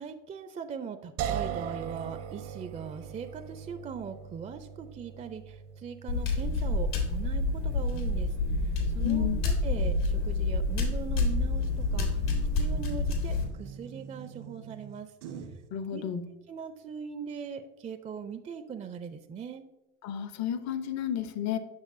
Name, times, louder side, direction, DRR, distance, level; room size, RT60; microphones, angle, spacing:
voice 1, 0.0-15.1 15.9-16.0 16.5-19.6, right 6 dB, 20° right, 9 dB, 0.4 m, -40 dB
sound 1, 1.2-14.3, right 9 dB, 65° right, 0.7 m, -42 dB
sound 2, 6.1-13.4, left 2 dB, 80° left, 1.7 m, -28 dB
voice 2, 9.0-9.4 15.7-16.2 20.0-21.6, left 10 dB, 50° left, 11 dB, 0.7 m, -31 dB
sound 3, 9.8-15.7, right 6 dB, 85° right, 1.3 m, -46 dB
7.2 x 6.0 x 2.5 m, 1.0 s
hypercardioid pair, 75°, 35 cm